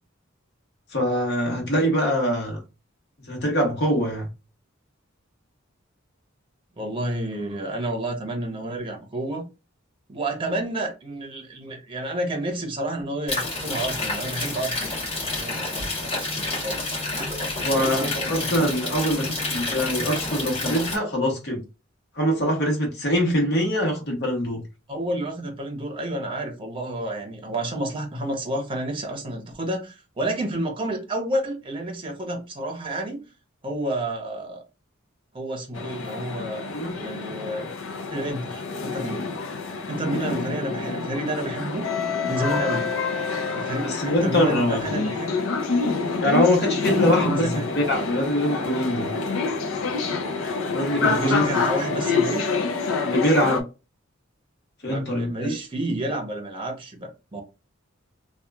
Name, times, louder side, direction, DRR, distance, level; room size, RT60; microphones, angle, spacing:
voice 1, 0.9-2.6 3.2-4.3 17.6-21.6 22.2-24.6 36.7-36.9 43.8-44.9 46.2-49.1 50.7-51.4 53.0-53.6 54.8-55.5, equal, 55° left, 1.2 m, -23 dB
voice 2, 6.8-9.4 10.1-14.9 15.3-18.8 24.9-33.2 33.6-34.6 35.3-37.7 38.1-39.4 39.8-41.9 42.3-42.9 43.5-45.5 47.2-47.7 51.0-52.4 54.9-57.4, right 1 dB, 25° right, 0.7 m, -30 dB
sound 1, 13.3-21.0, left 2 dB, 30° left, 1.2 m, -29 dB
sound 2, 35.7-53.6, left 4 dB, 85° left, 0.5 m, -27 dB
2.8 x 2.3 x 2.3 m
head